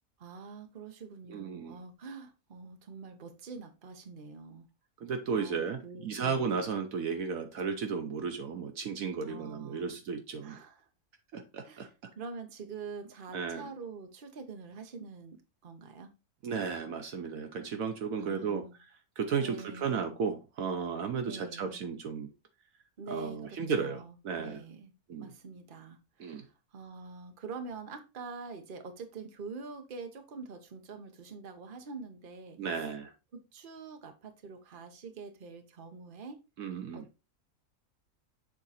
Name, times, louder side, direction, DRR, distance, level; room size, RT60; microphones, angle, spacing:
voice 1, 0.2-4.7 5.3-6.7 9.2-10.0 10.4-10.9 11.6-11.9 12.2-16.1 18.2-18.8 19.4-20.1 21.2-21.8 23.0-24.9 25.2-32.9 33.3-36.4 36.9-37.2, right 4 dB, 40° right, 1.1 m, -45 dB
voice 2, 1.3-1.8 5.0-10.6 11.3-12.1 13.3-13.7 16.4-18.9 19.2-22.3 23.1-24.6 25.1-25.3 26.2-26.4 32.6-33.1 36.6-37.1, right 6 dB, 70° right, 1.2 m, -34 dB
7.4 x 3.8 x 4.1 m
omnidirectional pair, 1.6 m